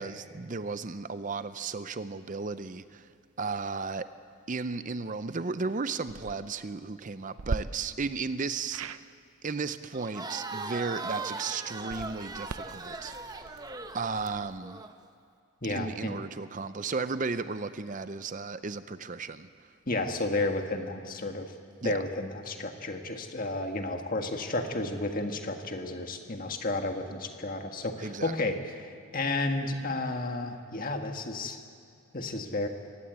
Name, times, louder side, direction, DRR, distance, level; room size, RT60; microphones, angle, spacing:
voice 1, 0.0-3.1 3.4-4.1 4.5-9.0 9.4-13.5 13.9-14.8 15.7-19.5 21.8-22.0 28.0-28.3, right 4 dB, 35° right, 12 dB, 0.5 m, -34 dB
sound 1, 6.0-6.4 7.4-7.6 8.7-9.0 11.8-14.6, right 4 dB, 75° right, 0.6 m, -39 dB
Crowd, 9.9-14.9, right 3 dB, 15° right, 0.9 m, -39 dB
voice 2, 15.6-16.2 19.9-21.5 21.8-31.6 32.1-32.7, left 2 dB, 40° left, 5 dB, 1.7 m, -32 dB
23.0 x 18.5 x 8.2 m, 2.5 s
head